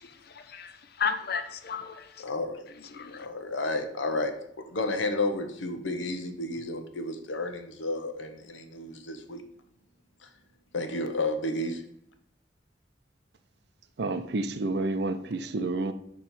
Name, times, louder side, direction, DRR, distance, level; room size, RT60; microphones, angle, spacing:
voice 1, 0.2-2.2 2.7-3.3, left 6 dB, 55° left, 9 dB, 0.6 m, -34 dB
voice 2, 2.2-2.7 3.1-4.3 4.7-9.4 10.2-10.3 10.7-11.8, left 2 dB, 80° left, 7 dB, 0.8 m, -31 dB
voice 3, 14.0-15.9, right 2 dB, 60° right, 10 dB, 0.5 m, -29 dB
6.9 x 3.1 x 5.5 m, 0.71 s
head